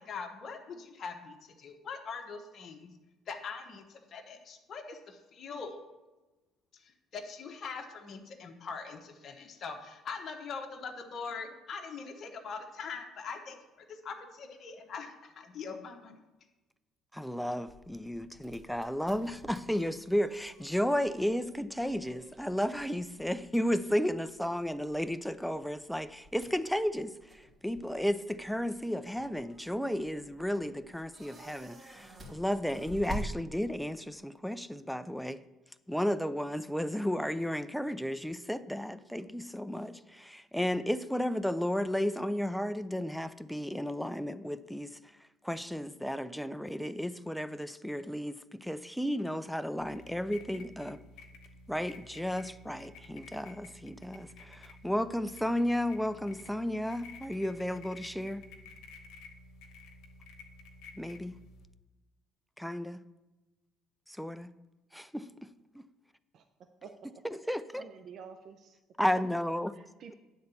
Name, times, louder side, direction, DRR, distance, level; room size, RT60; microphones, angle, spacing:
voice 1, 0.0-2.9 3.3-5.8 6.8-16.2, left 5 dB, 50° left, 1.1 m, -42 dB
voice 2, 17.1-35.4 35.9-51.0 51.7-58.4 61.0-61.4 62.6-63.0 64.1-64.5 64.9-65.8 67.2-67.8 69.0-69.7, equal, ahead, 0.5 m, -33 dB
sound 1, 17.7-34.0, right 1 dB, 35° right, 2.4 m, -49 dB
sound 2, 49.8-61.6, left 3 dB, 75° left, 1.1 m, -52 dB
voice 3, 67.8-68.8 69.7-70.1, right 6 dB, 60° right, 0.6 m, -49 dB
9.4 x 4.0 x 6.9 m
supercardioid pair, 75°, 0 cm